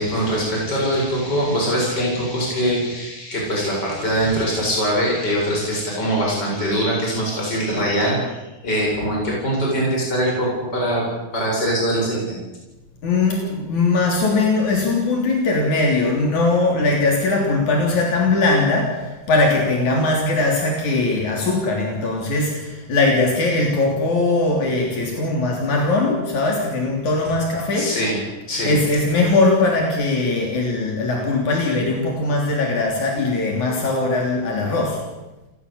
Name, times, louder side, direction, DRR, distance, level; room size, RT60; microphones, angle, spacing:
voice 1, 0.0-11.0 11.3-12.4 27.7-28.2 28.5-28.7, equal, 35° left, -2 dB, 8.3 m, -22 dB
voice 2, 13.0-27.9 28.6-35.0, left 2 dB, 80° left, 0 dB, 4.9 m, -20 dB
28.5 x 17.5 x 8.5 m, 1.1 s
omnidirectional pair, 3.3 m